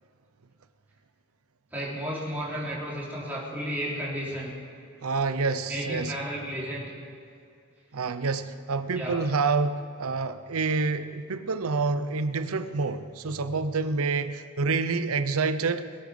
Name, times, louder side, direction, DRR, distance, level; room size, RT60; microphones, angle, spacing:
voice 1, 1.7-4.6 5.7-6.9 8.9-9.2, equal, 10° right, -7 dB, 3.3 m, -33 dB
voice 2, 5.0-6.1 7.9-15.8, right 4 dB, 85° right, 12 dB, 0.7 m, -27 dB
22.0 x 8.4 x 5.3 m, 2.5 s
head